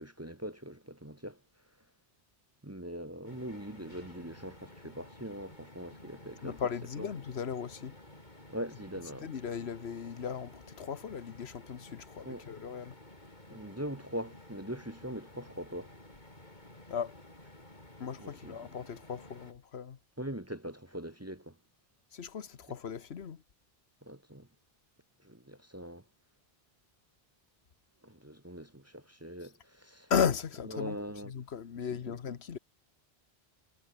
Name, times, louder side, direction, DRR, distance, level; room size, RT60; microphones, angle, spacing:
voice 1, 0.0-1.4 2.6-6.6 7.0-7.1 8.5-9.3 12.2-12.5 13.5-15.9 18.2-18.5 20.2-21.6 24.0-24.5 25.2-26.0 28.0-30.1 30.7-31.3, equal, 15° right, 1.1 m, -42 dB
sound 1, 3.2-19.5, left 1 dB, 45° left, 5.0 m, -53 dB
voice 2, 6.4-7.9 9.2-13.0 16.9-17.2 18.0-20.0 22.1-23.4 30.1-31.0 31.2-32.6, left 7 dB, 85° left, 1.4 m, -36 dB
omnidirectional pair, 1.1 m